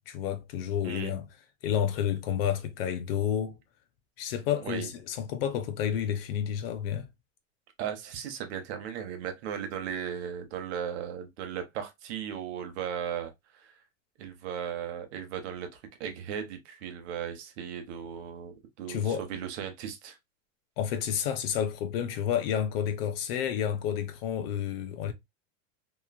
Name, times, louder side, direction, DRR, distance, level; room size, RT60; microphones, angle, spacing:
voice 1, 0.1-1.3 1.6-3.6 4.2-7.1 18.9-19.2 20.8-25.1, left 9 dB, 45° left, 0.5 m, -30 dB
voice 2, 4.6-4.9 7.8-13.7 14.2-20.2, right 8 dB, 55° right, 0.8 m, -37 dB
3.0 x 2.4 x 2.2 m
supercardioid pair, 160°, 40 cm